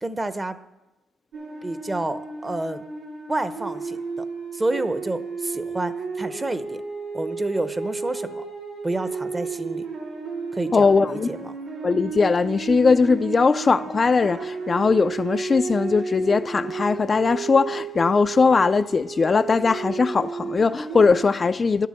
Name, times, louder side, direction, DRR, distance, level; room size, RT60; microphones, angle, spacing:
voice 1, 0.0-0.6 1.6-2.8 3.3-4.3 4.5-6.8 7.1-8.4 8.8-9.8 10.5-11.5, right 2 dB, 20° right, 0.7 m, -29 dB
sound 1, 1.3-21.3, right 4 dB, 90° right, 3.5 m, -33 dB
voice 2, 10.7-11.3 11.8-21.9, left 4 dB, 35° left, 0.3 m, -20 dB
11.5 x 7.6 x 7.6 m
cardioid pair, 90°, 0 cm